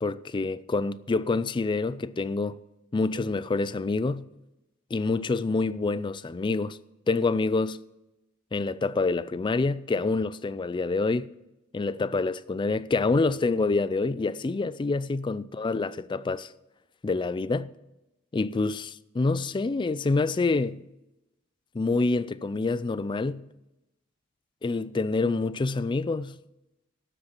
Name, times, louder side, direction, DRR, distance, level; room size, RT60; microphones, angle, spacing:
voice 1, 0.0-2.6 2.9-4.3 4.9-6.8 7.1-7.8 8.5-11.3 11.7-16.5 17.0-17.7 18.3-20.8 21.7-23.5 24.6-26.4, left 3 dB, 25° left, 0.3 m, -27 dB
12.5 x 7.9 x 6.0 m
head